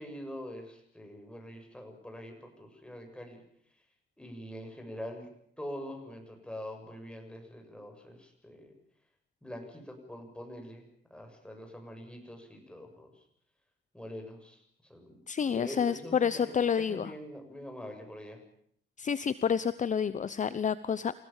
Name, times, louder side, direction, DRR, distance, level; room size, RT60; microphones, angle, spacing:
voice 1, 0.0-3.4 4.2-5.3 5.6-8.7 9.4-10.8 11.1-13.1 13.9-18.4, equal, 5° left, 4 dB, 7.2 m, -44 dB
voice 2, 15.3-17.1 19.0-21.2, left 7 dB, 40° left, 15 dB, 0.9 m, -29 dB
28.5 x 17.5 x 7.3 m, 0.65 s
cardioid pair, 90°, 20 cm